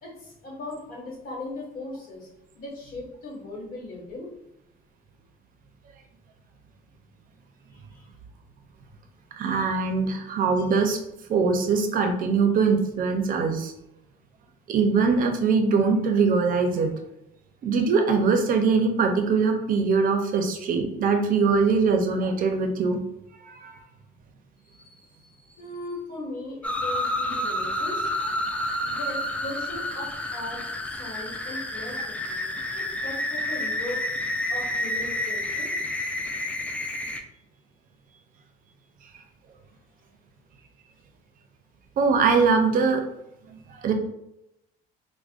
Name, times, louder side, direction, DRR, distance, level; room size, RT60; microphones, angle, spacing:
voice 1, 0.0-2.3 2.5-4.3 7.7-8.1 24.6-28.1 28.9-32.4 32.7-34.0 34.5-35.7, left 2 dB, 60° left, -2 dB, 1.5 m, -38 dB
voice 2, 9.4-11.0 11.3-13.7 14.7-16.9 17.6-23.0 23.4-23.8 28.5-28.6 42.0-43.0 43.5-43.9, right 4 dB, 55° right, 5 dB, 0.6 m, -22 dB
sound 1, 26.6-37.2, left 1 dB, 10° left, 0.4 m, -29 dB
4.6 x 2.2 x 2.4 m, 0.85 s
cardioid pair, 110°, 17 cm